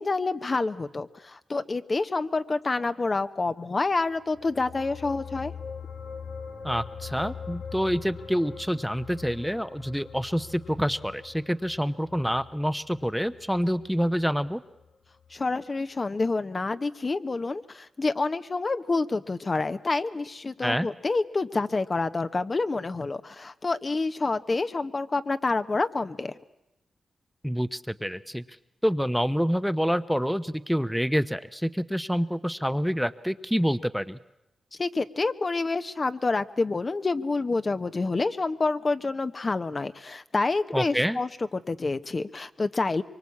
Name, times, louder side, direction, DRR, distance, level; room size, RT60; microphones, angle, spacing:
voice 1, 0.0-5.5 15.3-26.3 34.8-43.0, left 3 dB, 40° left, 10 dB, 1.0 m, -28 dB
sound 1, 4.2-14.9 15.2-15.4, left 6 dB, 75° left, 1.5 m, -42 dB
voice 2, 6.6-14.6 20.6-20.9 27.4-28.4 28.8-34.2 40.7-41.2, equal, ahead, 12 dB, 0.9 m, -27 dB
24.0 x 23.5 x 8.5 m, 0.91 s
supercardioid pair, 50°, 0 cm